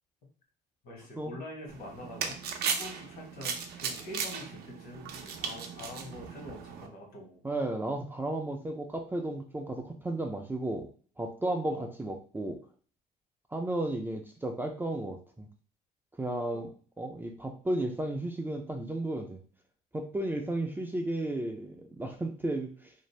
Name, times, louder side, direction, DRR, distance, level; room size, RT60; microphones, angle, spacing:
voice 1, 0.8-7.4 11.7-11.9 16.5-16.7, left 1 dB, 65° left, 0 dB, 1.3 m, -45 dB
sound 1, 1.7-6.9, right 6 dB, 70° right, 0.5 m, -37 dB
voice 2, 7.4-10.9 11.2-12.6 13.5-15.5 16.2-16.7 17.0-19.4 19.9-22.9, right 1 dB, 10° right, 3 dB, 0.4 m, -33 dB
2.6 x 2.0 x 3.1 m, 0.42 s
cardioid pair, 110°, 17 cm